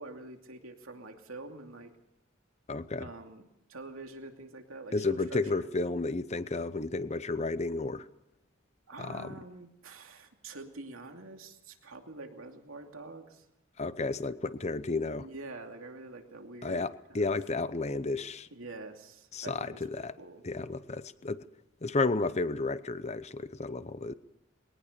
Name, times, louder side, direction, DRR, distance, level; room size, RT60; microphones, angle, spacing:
voice 1, 0.0-1.9 3.0-3.4 3.7-5.7 8.9-13.4 15.2-17.3 18.5-20.4, right 2 dB, 85° right, 3 dB, 2.7 m, -46 dB
voice 2, 2.7-3.1 4.9-8.1 9.0-9.4 13.8-15.3 16.6-18.5 19.3-20.1 20.4-21.4 21.8-24.1, left 3 dB, 35° left, 14 dB, 0.8 m, -32 dB
22.0 x 18.5 x 6.8 m, 0.83 s
head